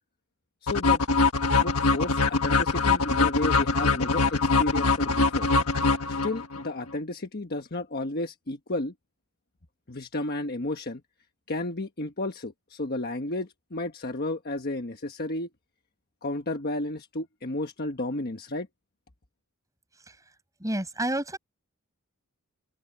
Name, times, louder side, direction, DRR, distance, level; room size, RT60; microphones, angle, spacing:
voice 1, 0.6-1.0 1.6-5.5 6.1-8.9 9.9-11.0 11.5-15.5 16.2-18.7, left 2 dB, 45° left, 1.3 m, -32 dB
sound 1, 0.7-6.6, left 4 dB, 80° left, 1.5 m, -23 dB
voice 2, 20.6-21.4, right 1 dB, 15° right, 5.4 m, -29 dB
open air
head